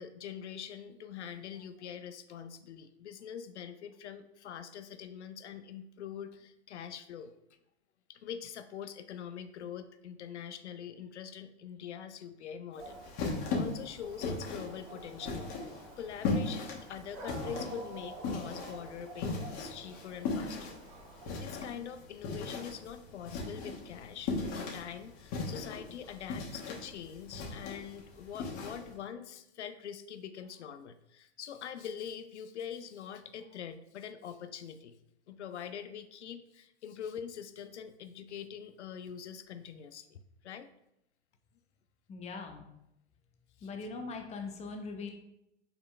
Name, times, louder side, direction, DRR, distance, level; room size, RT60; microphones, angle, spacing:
voice 1, 0.0-7.3 8.1-15.5 16.0-20.8 21.3-35.0 35.3-40.7 43.6-43.7, left 8 dB, 85° left, 9 dB, 0.5 m, -44 dB
Dog, 12.7-21.4, right 2 dB, 50° right, 1.3 m, -49 dB
sound 1, 12.8-28.9, left 3 dB, 45° left, 1.5 m, -38 dB
voice 2, 42.1-42.7 43.6-45.1, left 4 dB, 20° left, 3 dB, 0.8 m, -41 dB
5.5 x 4.4 x 2.2 m, 0.83 s
hypercardioid pair, 105°, 34 cm